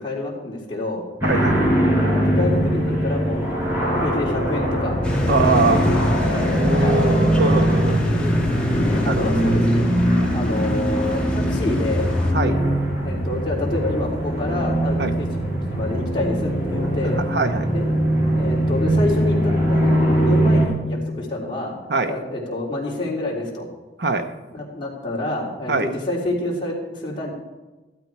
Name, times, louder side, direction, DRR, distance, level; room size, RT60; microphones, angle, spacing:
voice 1, 0.0-1.0 2.1-5.0 5.6-7.1 8.8-9.9 10.3-12.1 13.0-15.3 15.7-17.2 17.7-17.8 18.3-21.7 22.1-23.7 24.5-27.3, left 2 dB, 30° left, -4 dB, 3.4 m, -28 dB
sound 1, 1.2-20.7, equal, 15° right, 4.8 m, -21 dB
voice 2, 1.2-1.6 5.3-5.8 6.6-8.0 8.7-9.2 10.1-10.4 12.3-12.6 15.0-15.1 17.1-17.7 21.9-22.2 24.0-24.3 25.7-25.9, right 3 dB, 65° right, 7 dB, 1.0 m, -23 dB
sound 2, 5.0-12.3, equal, 5° left, 1.9 m, -25 dB
15.0 x 12.5 x 4.7 m, 1.2 s
head